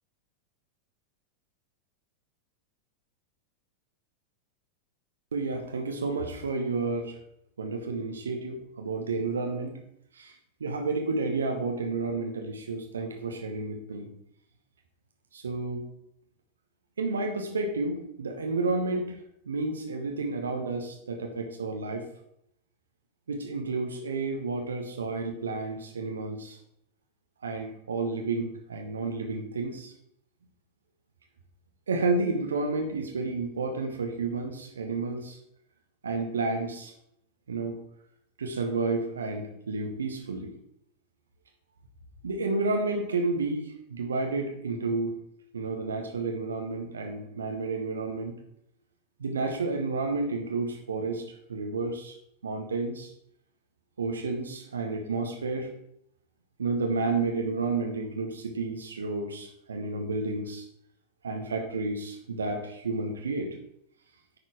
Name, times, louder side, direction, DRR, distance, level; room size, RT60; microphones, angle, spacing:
voice 1, 5.3-7.2 7.6-9.8 10.1-10.3 10.6-14.1 15.3-15.8 17.0-19.2 19.5-22.0 23.3-26.6 27.4-29.9 31.9-35.4 36.0-36.9 37.5-37.8 38.4-40.5 42.2-45.1 45.5-48.3 49.2-51.2 51.5-52.2 52.4-53.1 54.0-55.7 56.6-60.6 61.2-63.5, right 3 dB, 70° right, 3 dB, 1.0 m, -31 dB
9.7 x 4.2 x 4.7 m, 0.75 s
figure-of-eight pair, 90°, 0 cm